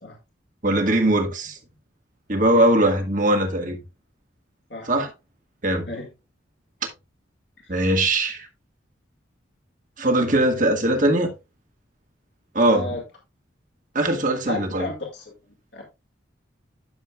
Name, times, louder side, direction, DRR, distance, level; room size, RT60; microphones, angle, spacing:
voice 1, 0.6-1.6 2.3-3.8 4.8-5.1 5.6-5.9 7.7-8.5 10.0-11.3 12.5-12.9 13.9-14.9, right 1 dB, 45° right, 1.6 m, -20 dB
voice 2, 12.6-13.0 14.5-15.2 15.7-15.8, left 2 dB, 65° left, 1.9 m, -33 dB
11.0 x 6.5 x 2.3 m
head